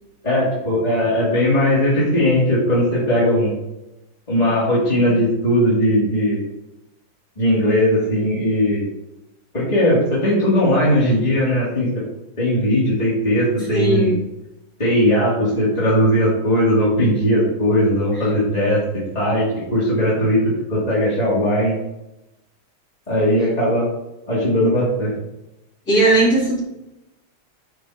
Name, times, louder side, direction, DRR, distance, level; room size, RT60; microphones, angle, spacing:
voice 1, 0.2-3.6 4.3-6.4 7.4-8.9 9.5-12.0 12.4-14.1 14.8-21.8 23.1-23.9 24.3-25.2, equal, 20° left, -8 dB, 3.0 m, -18 dB
voice 2, 13.7-14.2 25.9-26.6, right 2 dB, 35° left, -7 dB, 4.2 m, -17 dB
10.5 x 5.3 x 4.9 m, 0.92 s
omnidirectional pair, 2.1 m